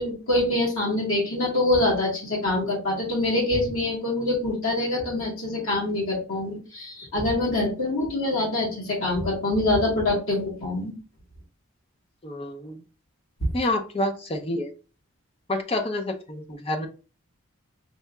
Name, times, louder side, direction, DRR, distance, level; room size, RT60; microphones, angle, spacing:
voice 1, 0.0-10.9, left 2 dB, 70° left, -3 dB, 1.7 m, -25 dB
voice 2, 12.2-12.8 13.5-14.7 15.5-16.9, left 1 dB, 25° left, 4 dB, 0.5 m, -28 dB
5.3 x 2.7 x 2.3 m, 0.35 s
head